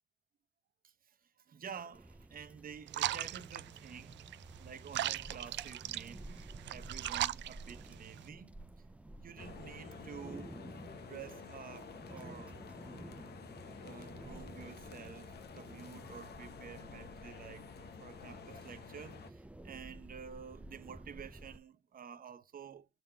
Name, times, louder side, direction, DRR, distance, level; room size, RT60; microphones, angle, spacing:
voice 1, 0.8-4.2 4.6-8.6 9.2-10.7 11.0-12.6 13.8-22.9, right 7 dB, 45° right, 0.9 m, -50 dB
sound 1, 1.9-21.6, right 1 dB, 5° right, 0.4 m, -52 dB
sound 2, 2.9-8.3, right 13 dB, 65° right, 0.4 m, -39 dB
sound 3, 9.4-19.3, left 6 dB, 55° left, 0.9 m, -50 dB
6.9 x 3.8 x 4.5 m
cardioid pair, 90°, 20 cm